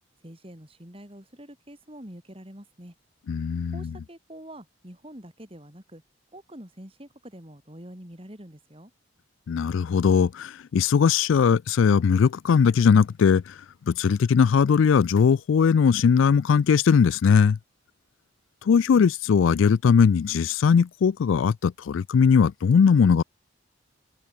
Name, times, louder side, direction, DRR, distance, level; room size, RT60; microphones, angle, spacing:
voice 1, 0.2-2.9 3.7-6.0 6.3-8.9, right 1 dB, 25° right, 4.3 m, -45 dB
voice 2, 3.3-3.9 9.5-13.4 13.9-17.6 18.7-23.2, left 6 dB, 75° left, 0.3 m, -20 dB
open air
head